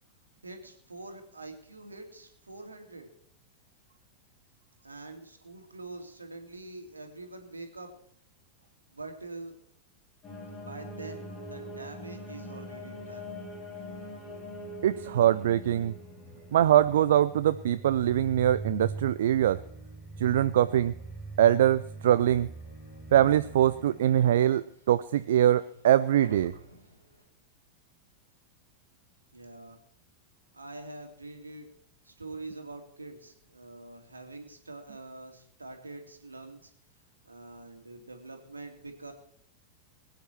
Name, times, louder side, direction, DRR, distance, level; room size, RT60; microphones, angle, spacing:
voice 1, 0.4-3.1 4.8-7.9 8.9-9.6 10.6-13.3 29.3-29.8 30.5-31.7 32.0-36.7 37.3-39.1, right 2 dB, 80° right, 4 dB, 2.6 m, -45 dB
sound 1, 10.2-24.4, right 1 dB, 25° left, 4.6 m, -42 dB
voice 2, 14.8-15.9 16.5-19.6 20.2-20.9 21.4-22.5 23.1-26.5, right 11 dB, 60° right, 14 dB, 0.4 m, -23 dB
sound 2, 22.2-27.2, equal, 85° left, 4.2 m, -52 dB
21.5 x 9.4 x 4.6 m, 0.67 s
figure-of-eight pair, 90°, 0 cm